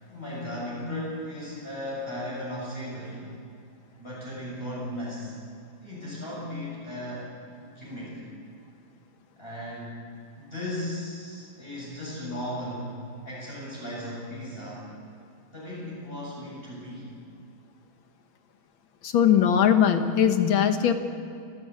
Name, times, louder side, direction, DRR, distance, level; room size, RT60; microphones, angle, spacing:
voice 1, 0.0-3.3 4.0-5.3 5.8-8.2 9.4-10.0 10.4-13.0 13.3-14.9 15.5-17.1, left 1 dB, 25° left, -8 dB, 7.4 m, -36 dB
voice 2, 19.0-20.9, left 9 dB, 70° left, 7 dB, 2.0 m, -20 dB
29.5 x 12.5 x 8.5 m, 2.5 s
omnidirectional pair, 2.2 m